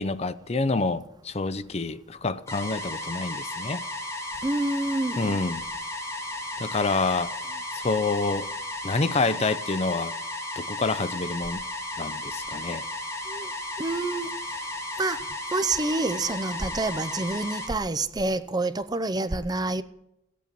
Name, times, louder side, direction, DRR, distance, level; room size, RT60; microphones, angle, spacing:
voice 1, 0.0-3.9 5.2-5.6 6.6-7.3 7.7-8.5 8.8-10.1 10.6-11.6 12.0-12.8, left 3 dB, 35° left, 0.6 m, -27 dB
sound 1, 2.5-17.7, left 1 dB, 15° left, 4.0 m, -34 dB
voice 2, 4.4-5.4 13.3-13.5 13.8-14.3 15.0-15.2 15.5-19.8, right 2 dB, 20° right, 0.6 m, -27 dB
16.5 x 8.4 x 8.9 m
head